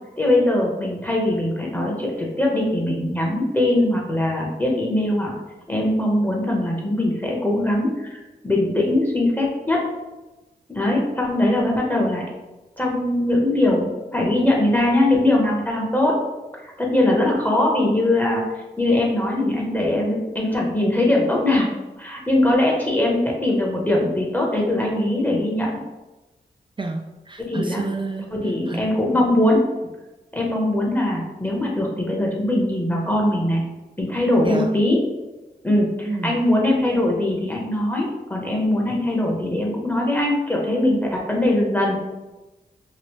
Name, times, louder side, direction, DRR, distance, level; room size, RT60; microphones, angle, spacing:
voice 1, 0.2-5.3 5.7-9.9 10.7-12.2 12.8-16.1 16.6-18.4 18.8-21.7 22.0-25.8 27.4-27.8 28.3-29.7 30.3-33.6 34.0-35.0 35.6-42.0, left 1 dB, 10° left, -2 dB, 0.9 m, -21 dB
voice 2, 26.8-28.3 28.7-28.9 34.4-34.7 36.1-36.3, right 2 dB, 30° right, 4 dB, 0.3 m, -28 dB
3.0 x 2.8 x 3.0 m, 1.1 s
cardioid pair, 55°, 18 cm